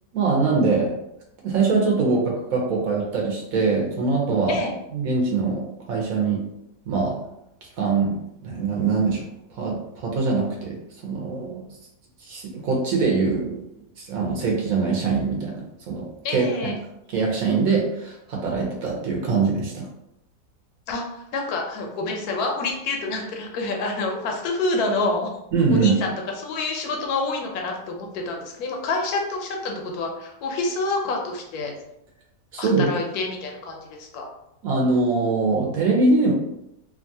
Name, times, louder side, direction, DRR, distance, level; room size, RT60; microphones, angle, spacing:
voice 1, 0.1-0.9 1.4-4.6 4.9-5.6 5.9-6.4 6.9-7.2 7.8-8.2 8.4-9.2 9.5-10.8 11.0-11.7 12.2-13.6 14.0-16.1 16.3-16.7 17.1-19.9 25.5-25.9 32.5-32.9 34.6-36.3, right 4 dB, 65° right, -1 dB, 1.0 m, -22 dB
voice 2, 16.2-16.7 20.9-25.3 25.7-31.7 32.6-34.3, left 3 dB, 75° left, 1 dB, 1.1 m, -27 dB
2.9 x 2.3 x 2.6 m, 0.80 s
omnidirectional pair, 1.7 m